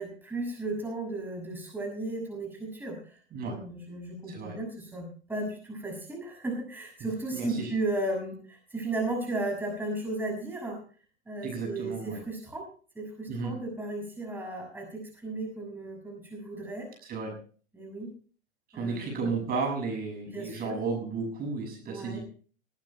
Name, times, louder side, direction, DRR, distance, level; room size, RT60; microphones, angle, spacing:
voice 1, 0.0-10.8 11.3-12.7 12.9-16.9 17.7-18.1 18.7-19.3 20.2-20.8 21.8-22.2, right 2 dB, 5° right, 0 dB, 6.2 m, -35 dB
voice 2, 4.3-4.6 7.3-7.7 11.4-12.2 13.3-13.6 17.0-17.3 18.7-22.2, right 4 dB, 25° right, 3 dB, 6.6 m, -33 dB
20.5 x 18.0 x 2.2 m, 0.41 s
figure-of-eight pair, 105°, 33 cm